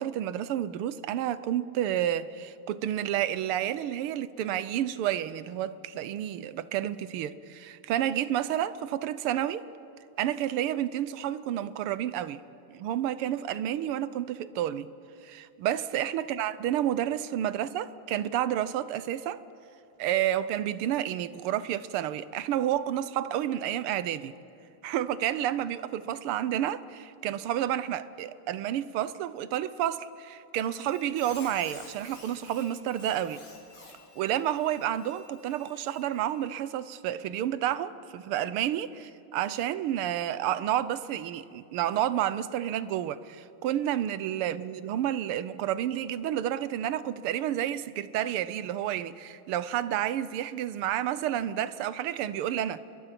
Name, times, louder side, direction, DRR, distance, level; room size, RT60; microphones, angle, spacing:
voice 1, 0.0-9.6 10.2-12.4 12.7-14.9 15.2-19.4 20.0-24.3 24.8-33.4 34.2-52.8, right 11 dB, 90° right, 1.7 m, -30 dB
Squeak, 30.6-36.6, left 2 dB, 85° left, 4.4 m, -51 dB
30.0 x 22.0 x 5.9 m
omnidirectional pair, 2.4 m